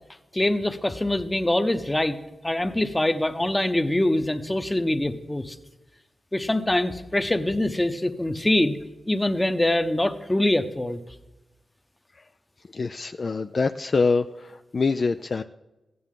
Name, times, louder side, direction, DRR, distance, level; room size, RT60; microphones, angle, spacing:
voice 1, 0.3-2.2 2.4-5.6 6.3-8.8 9.1-11.0, left 1 dB, 15° left, 9 dB, 0.9 m, -24 dB
voice 2, 12.7-15.4, left 4 dB, 50° left, 8 dB, 0.3 m, -25 dB
15.5 x 9.4 x 3.8 m, 1.0 s
cardioid pair, 55°, 0 cm